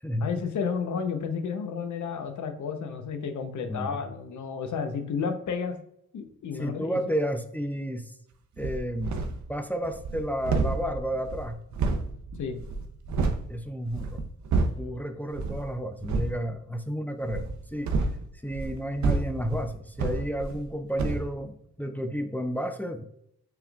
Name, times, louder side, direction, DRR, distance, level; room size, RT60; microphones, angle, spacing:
voice 1, 0.2-5.8 6.1-7.0 12.4-12.6, left 6 dB, 65° left, 7 dB, 0.8 m, -32 dB
voice 2, 3.7-4.0 6.6-8.1 8.6-11.6 13.5-14.3 14.8-17.9 18.4-23.0, equal, 5° left, 7 dB, 0.4 m, -32 dB
sound 1, 8.6-9.5 9.8-13.5 13.9-14.9 15.3-15.7 16.0-16.4 17.2-20.7 21.0-21.3, right 3 dB, 65° right, 0.6 m, -29 dB
6.0 x 3.5 x 2.3 m, 0.73 s
cardioid pair, 95°, 32 cm